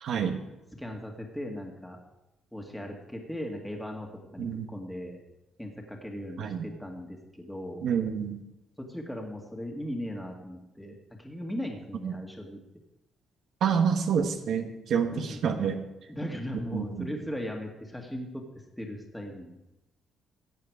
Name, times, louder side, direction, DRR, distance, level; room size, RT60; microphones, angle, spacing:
voice 1, 0.0-0.4 4.4-4.7 6.4-6.6 7.8-8.4 12.0-12.1 13.6-15.8 16.7-17.1, right 7 dB, 70° right, 6 dB, 1.1 m, -28 dB
voice 2, 0.7-2.0 2.5-4.1 4.3-5.2 5.6-7.8 8.8-12.6 15.1-15.6 16.1-19.6, equal, 5° left, 0 dB, 1.9 m, -38 dB
14.5 x 8.4 x 4.8 m, 0.97 s
cardioid pair, 90°, 0 cm